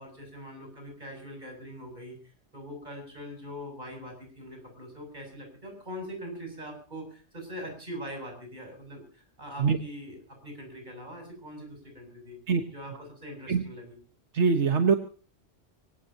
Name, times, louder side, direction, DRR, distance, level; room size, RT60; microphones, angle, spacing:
voice 1, 0.0-2.2 2.5-12.4 12.7-14.0, equal, 40° right, 2 dB, 8.1 m, -42 dB
voice 2, 14.3-15.0, right 5 dB, 80° right, 6 dB, 1.6 m, -22 dB
24.5 x 17.5 x 2.9 m, 0.37 s
omnidirectional pair, 1.2 m